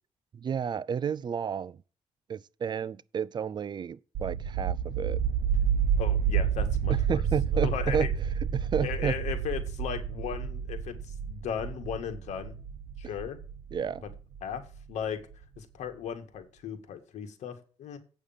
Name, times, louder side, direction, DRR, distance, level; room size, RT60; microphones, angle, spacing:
voice 1, 0.3-1.8 2.3-5.2 6.9-8.1 8.5-9.1 13.7-14.0, right 7 dB, 40° right, 0.4 m, -31 dB
sound 1, 4.1-14.8, right 7 dB, 85° right, 0.8 m, -30 dB
voice 2, 6.0-7.2 7.5-8.1 8.8-12.5 13.0-13.4 14.0-14.1 14.4-15.2 15.6-18.0, left 8 dB, 85° left, 1.8 m, -36 dB
8.4 x 6.5 x 7.3 m
cardioid pair, 115°, 12 cm